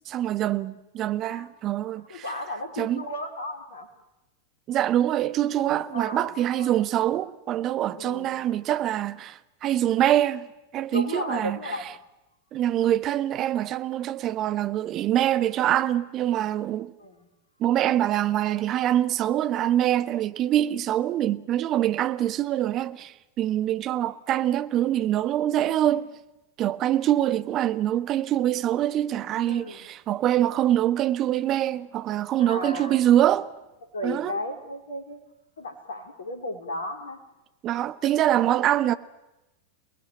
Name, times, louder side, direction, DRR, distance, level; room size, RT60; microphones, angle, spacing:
voice 1, 0.1-2.2 2.8-3.0 4.7-10.5 10.7-11.6 12.5-16.9 17.6-26.1 26.6-33.5 34.0-34.4 37.6-38.9, right 12 dB, 35° right, 1.3 m, -24 dB
voice 2, 2.1-3.9 5.9-6.8 7.9-8.3 10.9-11.9 17.0-17.3 29.4-29.9 32.4-33.0 33.9-35.2 35.6-37.2, left 2 dB, 65° left, 4.4 m, -35 dB
29.0 x 19.0 x 9.1 m
figure-of-eight pair, 90°, 0 cm